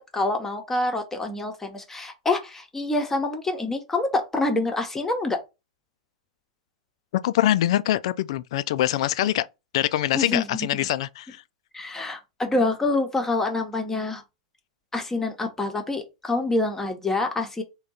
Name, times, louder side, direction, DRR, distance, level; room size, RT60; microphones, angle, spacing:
voice 1, 0.0-5.4 10.1-10.7 11.7-14.2 14.9-17.6, left 2 dB, 10° left, 0.9 m, -26 dB
voice 2, 7.2-9.5 9.7-11.4, left 13 dB, 60° left, 0.3 m, -24 dB
3.5 x 2.3 x 4.0 m
hypercardioid pair, 100°, 3 cm